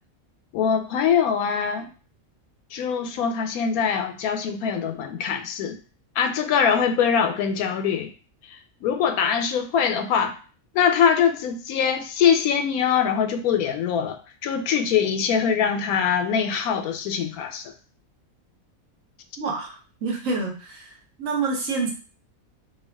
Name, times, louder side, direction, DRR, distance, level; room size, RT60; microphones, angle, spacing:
voice 1, 0.5-1.9 2.7-5.8 6.2-8.1 8.5-10.4 10.7-17.7, left 7 dB, 85° left, 8 dB, 1.0 m, -23 dB
voice 2, 19.4-19.8 20.0-20.8 21.2-21.9, right 4 dB, 65° right, 0 dB, 1.3 m, -27 dB
3.5 x 2.3 x 3.4 m, 0.36 s
omnidirectional pair, 1.5 m